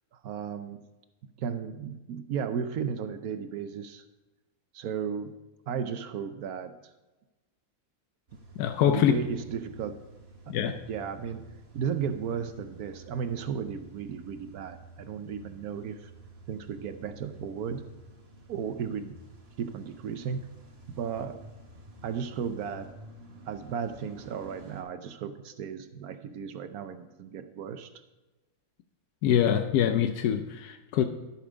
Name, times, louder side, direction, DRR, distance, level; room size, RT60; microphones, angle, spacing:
voice 1, 0.1-0.8 1.4-4.0 4.7-5.4 5.7-6.9 8.9-10.0 10.5-11.5 11.7-16.1 16.5-17.9 18.5-19.2 19.6-20.5 20.9-21.4 22.0-22.9 23.5-27.9, right 7 dB, 75° right, 1.2 m, -35 dB
Car / Engine starting / Idling, 8.3-24.8, right 2 dB, 45° right, 1.6 m, -51 dB
voice 2, 8.6-9.1 10.5-10.7 29.2-31.0, left 10 dB, 85° left, 1.2 m, -24 dB
12.5 x 5.9 x 5.1 m
omnidirectional pair, 1.6 m